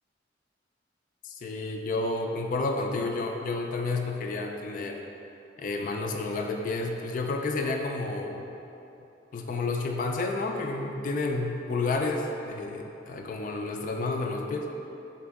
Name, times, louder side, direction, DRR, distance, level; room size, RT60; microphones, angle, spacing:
voice 1, 1.2-5.0 5.6-8.5 9.3-14.7, left 3 dB, 45° left, 3 dB, 0.3 m, -30 dB
4.3 x 2.9 x 3.5 m, 2.8 s
head